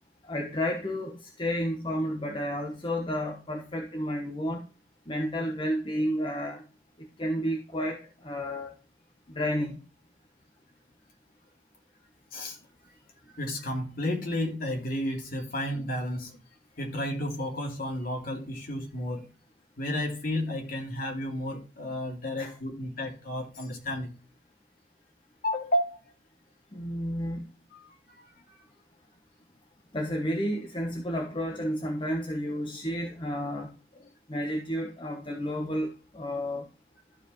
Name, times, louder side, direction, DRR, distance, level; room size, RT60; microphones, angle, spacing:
voice 1, 0.3-4.6 5.1-6.6 7.2-8.7 9.3-9.8 22.4-22.5 26.7-27.5 29.9-33.7 34.3-36.6, equal, 30° left, 1.1 m, -31 dB
voice 2, 13.3-16.4 16.8-19.3 19.8-24.1 25.4-26.0 27.7-27.9 28.2-28.6 34.0-34.1, left 1 dB, 55° left, 2.7 m, -32 dB
13.0 x 5.0 x 3.2 m
head